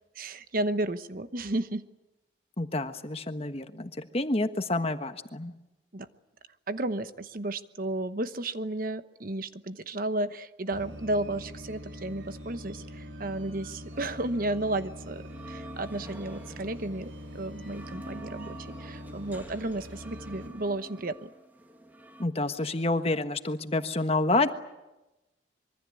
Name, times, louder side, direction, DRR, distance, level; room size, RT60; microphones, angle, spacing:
voice 1, 0.1-1.9 5.9-6.1 6.7-21.3, right 2 dB, 50° right, 11 dB, 1.1 m, -33 dB
voice 2, 2.6-5.5 22.2-24.5, left 2 dB, 30° left, 8 dB, 1.4 m, -28 dB
sound 1, 10.7-20.5, equal, 80° right, 3.9 m, -44 dB
sound 2, 13.9-22.3, right 1 dB, 10° right, 2.0 m, -48 dB
25.5 x 23.5 x 8.5 m, 0.99 s
head